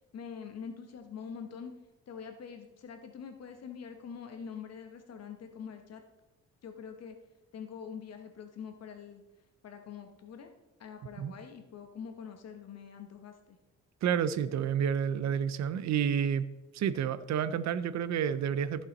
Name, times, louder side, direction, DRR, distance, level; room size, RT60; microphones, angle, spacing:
voice 1, 0.1-1.7 2.1-6.0 6.6-7.2 7.5-9.2 9.6-10.5 10.8-13.6, left 7 dB, 55° left, 1.2 m, -44 dB
voice 2, 14.0-16.5 16.7-18.9, right 8 dB, 65° right, 0.7 m, -30 dB
14.0 x 5.6 x 4.1 m
cardioid pair, 90°, 30 cm